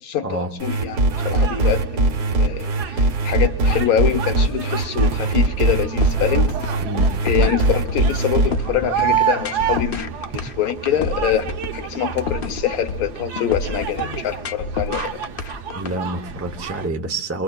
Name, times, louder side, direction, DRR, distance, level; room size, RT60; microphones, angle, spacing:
voice 1, 0.0-6.5 7.2-11.5 11.7-15.2, left 10 dB, 65° left, 9 dB, 1.3 m, -25 dB
sound 1, 0.6-8.5, right 2 dB, 70° right, 1.7 m, -20 dB
sound 2, 0.8-16.9, right 8 dB, 85° right, 1.4 m, -30 dB
sound 3, 6.0-15.9, left 3 dB, 50° left, 0.7 m, -29 dB
voice 2, 6.8-7.1 15.7-17.4, right 2 dB, 25° right, 5 dB, 0.3 m, -27 dB
26.5 x 23.0 x 2.3 m, 0.77 s
omnidirectional pair, 1.7 m